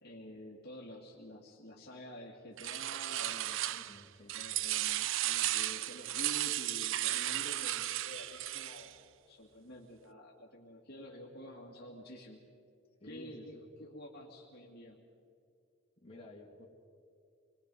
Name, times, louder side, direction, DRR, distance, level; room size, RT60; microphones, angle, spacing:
voice 1, 0.0-3.7 4.3-12.4 13.0-15.1, equal, 50° left, -2 dB, 2.4 m, -49 dB
sound 1, 2.6-4.0 4.3-8.9, right 14 dB, 60° right, 0.4 m, -35 dB
voice 2, 3.7-4.4 13.0-13.6 16.0-16.7, left 2 dB, 25° left, -3 dB, 2.8 m, -53 dB
27.0 x 22.0 x 5.5 m, 2.4 s
head